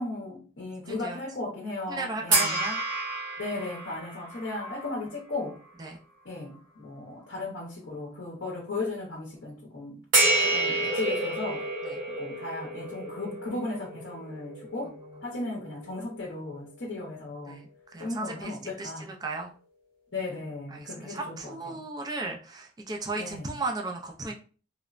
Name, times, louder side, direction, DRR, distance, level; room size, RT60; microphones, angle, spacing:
voice 1, 0.0-2.6 3.4-5.6 6.2-10.0 10.4-11.7 12.2-15.0 15.2-17.6 18.0-19.0 20.1-21.8 23.2-23.5, left 2 dB, 60° left, 0.7 m, -36 dB
voice 2, 0.9-1.2 1.9-2.8 5.8-6.0 10.2-10.4 11.8-12.0 14.8-15.2 17.5-19.5 20.7-24.3, right 3 dB, 20° right, 0.3 m, -36 dB
sound 1, 2.3-5.8 6.4-6.5 10.1-16.5, right 2 dB, 45° right, 1.1 m, -30 dB
3.1 x 2.0 x 2.4 m
head